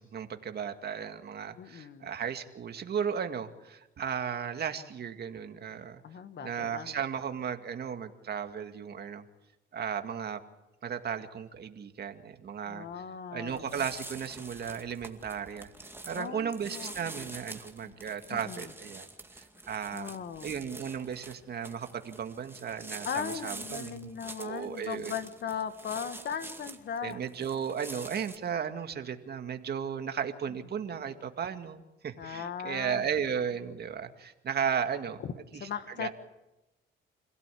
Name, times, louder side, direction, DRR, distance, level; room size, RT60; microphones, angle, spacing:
voice 1, 0.0-6.0 6.4-9.2 9.7-10.4 10.8-13.0 13.3-15.7 16.0-19.1 19.3-20.1 20.4-25.1 27.0-35.2 35.5-35.7 36.0-36.1, right 7 dB, 55° right, 7 dB, 2.2 m, -35 dB
voice 2, 1.6-2.1 6.0-7.0 12.7-13.7 16.1-16.9 17.8-17.9 18.3-18.7 19.9-20.6 23.0-27.2 32.2-33.1 35.2-36.1, left 7 dB, 60° left, 10 dB, 1.8 m, -38 dB
sound 1, 13.5-28.4, right 2 dB, 10° right, 2.3 m, -46 dB
27.0 x 16.5 x 8.6 m, 0.97 s
cardioid pair, 90°, 20 cm